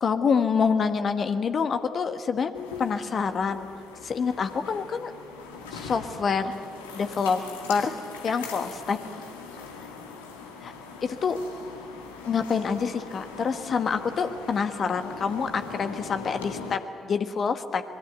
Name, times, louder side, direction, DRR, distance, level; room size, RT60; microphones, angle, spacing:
voice 1, 0.0-2.5 2.8-3.7 4.0-5.1 5.7-6.5 6.9-7.4 7.7-8.0 8.2-9.0 11.0-11.4 12.2-17.8, left 6 dB, 45° left, 9 dB, 1.4 m, -26 dB
sound 1, 2.5-16.7, left 5 dB, 75° left, 1.8 m, -41 dB
25.0 x 21.5 x 8.2 m, 2.1 s
figure-of-eight pair, 40°, 0 cm